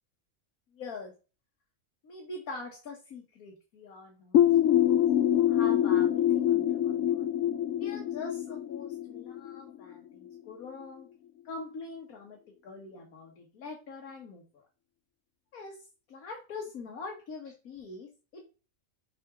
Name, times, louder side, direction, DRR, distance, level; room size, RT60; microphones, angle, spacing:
voice 1, 0.7-1.1 2.0-4.4 4.8-5.0 5.3-7.3 7.8-11.1 11.5-12.4 12.6-14.6 15.5-15.8 16.1-18.4, left 3 dB, 90° left, 0 dB, 1.7 m, -43 dB
sound 1, 4.3-9.9, left 11 dB, 75° left, 0.9 m, -25 dB
6.2 x 5.0 x 3.6 m, 0.32 s
omnidirectional pair, 1.5 m